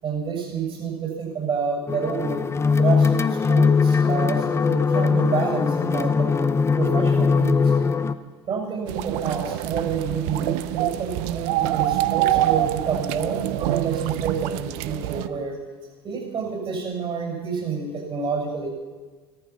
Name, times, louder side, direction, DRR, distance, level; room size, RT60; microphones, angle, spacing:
voice 1, 0.0-6.5 6.8-7.7 8.5-15.6 16.0-18.7, right 6 dB, 40° right, 1 dB, 6.5 m, -29 dB
sound 1, 1.9-8.1, left 5 dB, 20° left, 0.8 m, -20 dB
sound 2, 8.9-15.3, right 14 dB, 65° right, 0.6 m, -25 dB
14.5 x 14.0 x 6.0 m, 1.4 s
hypercardioid pair, 75°, 14 cm